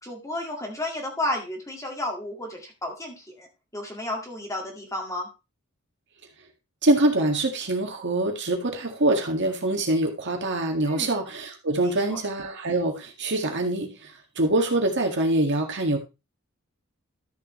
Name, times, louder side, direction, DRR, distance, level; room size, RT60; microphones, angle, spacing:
voice 1, 0.0-3.5 3.7-5.3 10.8-11.1 11.8-12.2, left 1 dB, 15° left, 1 dB, 1.9 m, -32 dB
voice 2, 6.8-16.0, right 1 dB, 55° right, 2 dB, 2.0 m, -24 dB
13.0 x 7.0 x 3.1 m, 0.27 s
head